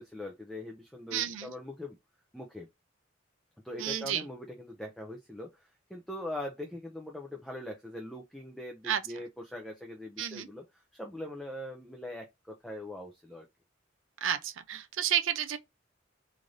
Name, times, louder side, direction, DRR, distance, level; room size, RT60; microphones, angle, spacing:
voice 1, 0.0-2.0 2.3-2.7 3.6-10.6 10.9-13.5, left 1 dB, ahead, 0.4 m, -42 dB
voice 2, 1.1-1.5 3.8-4.2 8.8-9.2 10.2-10.5 14.2-15.6, right 10 dB, 70° right, 0.4 m, -31 dB
3.2 x 2.5 x 3.8 m
head